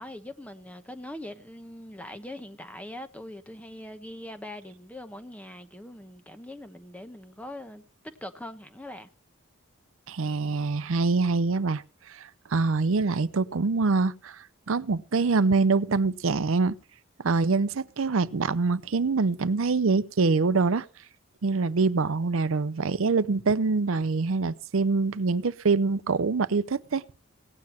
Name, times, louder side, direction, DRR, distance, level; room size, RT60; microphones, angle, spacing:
voice 1, 0.0-7.8 8.2-9.1, left 1 dB, 5° left, 0.9 m, -42 dB
voice 2, 10.1-16.8 17.2-20.9 21.4-27.0, right 4 dB, 75° right, 0.6 m, -25 dB
17.5 x 9.5 x 4.3 m
head